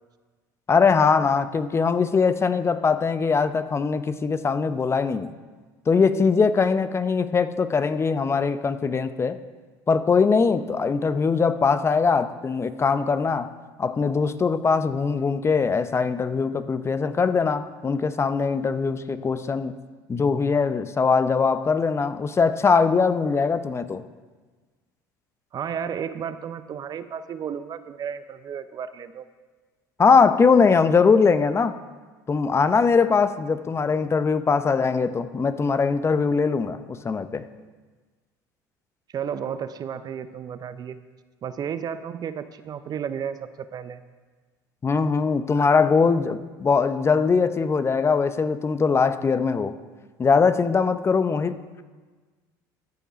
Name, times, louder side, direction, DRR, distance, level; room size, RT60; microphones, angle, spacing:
voice 1, 0.7-5.3 5.9-9.4 9.9-13.5 13.8-19.7 20.1-24.0 30.0-31.8 32.3-37.4 44.8-49.7 50.2-51.6, left 5 dB, 25° left, 11 dB, 0.6 m, -21 dB
voice 2, 25.5-29.3 39.1-41.0 41.4-44.0, right 8 dB, 40° right, 12 dB, 0.6 m, -33 dB
13.5 x 6.7 x 5.1 m, 1.4 s
hypercardioid pair, 80°, 10 cm